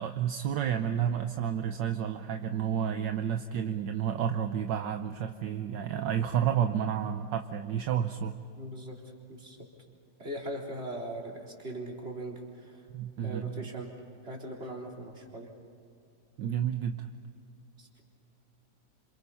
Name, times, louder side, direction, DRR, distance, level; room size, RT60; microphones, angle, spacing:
voice 1, 0.0-8.4 12.9-13.6 16.4-17.1, right 9 dB, 70° right, 6 dB, 1.5 m, -30 dB
voice 2, 8.6-9.0 9.3-9.6 10.2-12.9 13.2-13.9 14.2-15.5 17.8-18.0, right 1 dB, 30° right, -1 dB, 4.1 m, -40 dB
28.0 x 27.0 x 5.7 m, 2.4 s
omnidirectional pair, 2.1 m